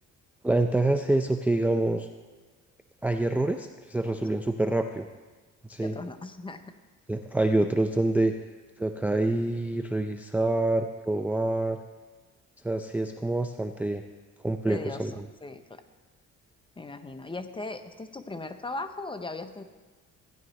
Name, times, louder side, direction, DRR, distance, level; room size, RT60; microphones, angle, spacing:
voice 1, 0.4-2.1 3.0-5.1 5.7-6.0 7.1-8.3 8.8-11.8 12.6-14.0 14.4-15.2, right 2 dB, 5° right, 6 dB, 0.4 m, -26 dB
voice 2, 5.8-6.7 14.7-15.1 15.4-15.8 16.8-19.6, left 3 dB, 15° left, 9 dB, 0.7 m, -38 dB
15.5 x 10.5 x 3.2 m, 1.3 s
cardioid pair, 90°, 30 cm